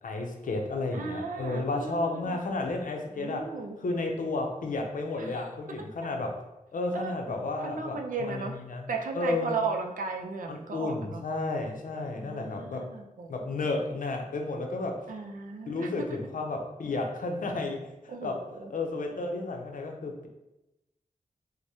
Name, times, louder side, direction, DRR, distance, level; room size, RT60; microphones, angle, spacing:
voice 1, 0.0-3.5 3.8-6.4 6.7-9.6 10.5-12.9 13.3-15.0 15.7-18.4 18.7-20.3, left 2 dB, 75° left, 2 dB, 0.6 m, -32 dB
voice 2, 0.9-2.4 3.2-3.8 5.2-5.3 6.9-7.1 7.6-8.5 8.9-11.2 11.9-13.3 15.1-16.2 18.1-18.7, right 4 dB, 75° right, 3 dB, 0.5 m, -36 dB
4.7 x 2.1 x 2.7 m, 0.94 s
wide cardioid pair, 110°, 14 cm